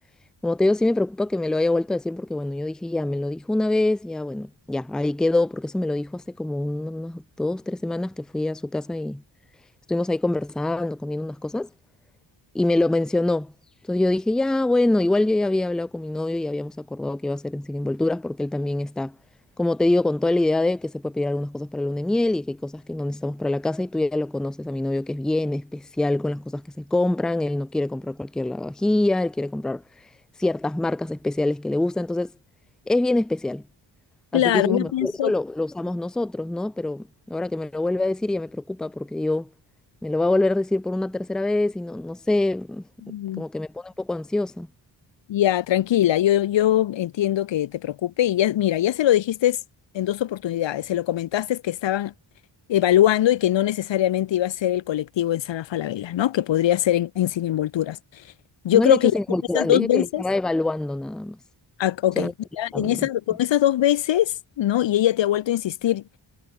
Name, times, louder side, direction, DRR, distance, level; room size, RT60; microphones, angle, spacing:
voice 1, 0.4-9.2 9.9-11.7 12.5-13.5 13.9-19.2 19.6-29.8 30.4-32.3 32.9-33.6 34.3-39.5 40.0-42.8 43.4-44.7 58.7-61.4 62.2-62.3 62.7-63.1, left 2 dB, ahead, 0.5 m, -25 dB
voice 2, 34.3-35.3 43.0-43.4 45.3-49.6 49.9-52.1 52.7-58.0 58.6-59.1 59.5-60.2 61.8-62.3 62.6-66.0, left 12 dB, 70° left, 0.6 m, -22 dB
wide cardioid pair, 155°, 46 cm